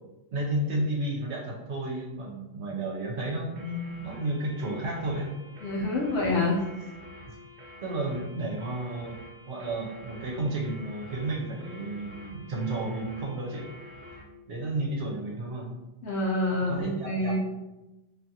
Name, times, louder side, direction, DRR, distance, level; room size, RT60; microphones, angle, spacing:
voice 1, 0.3-5.3 7.8-9.2 9.5-13.6 14.5-15.7 16.5-17.4, right 1 dB, 65° right, -3 dB, 0.8 m, -32 dB
sound 1, 3.6-14.3, left 1 dB, 85° right, 0.4 m, -48 dB
voice 2, 5.6-6.6 16.0-17.4, left 2 dB, 65° left, -3 dB, 0.8 m, -27 dB
2.5 x 2.4 x 2.6 m, 1.0 s
omnidirectional pair, 1.4 m